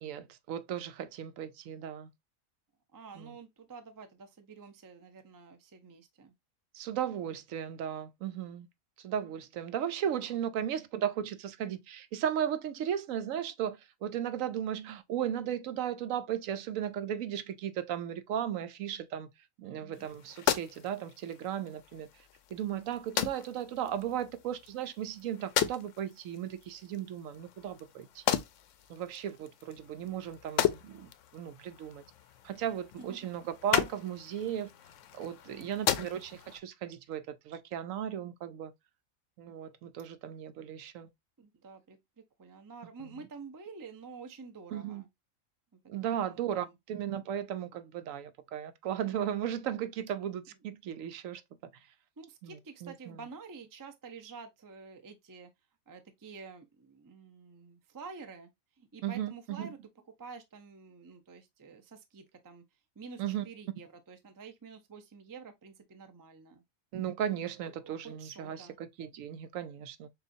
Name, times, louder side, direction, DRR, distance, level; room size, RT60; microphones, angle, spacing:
voice 1, 0.0-2.1 3.1-3.4 6.7-8.7 9.0-19.3 19.6-22.1 22.5-28.4 28.9-32.0 32.4-34.7 35.1-38.7 39.4-41.1 43.0-43.2 44.7-45.0 45.9-51.4 52.4-53.2 59.0-59.7 63.2-63.4 66.9-70.1, right 10 dB, 75° right, 1.0 m, -36 dB
voice 2, 2.9-6.3 10.2-10.3 19.6-20.1 33.0-33.3 35.4-36.1 41.4-42.0 42.4-45.1 45.7-46.7 52.2-55.5 55.9-58.5 58.8-59.8 60.2-62.6 63.0-66.6 67.8-68.8, right 5 dB, 30° right, 0.4 m, -49 dB
sound 1, 19.9-36.6, left 10 dB, 70° left, 0.9 m, -36 dB
6.7 x 2.4 x 2.6 m
omnidirectional pair, 1.4 m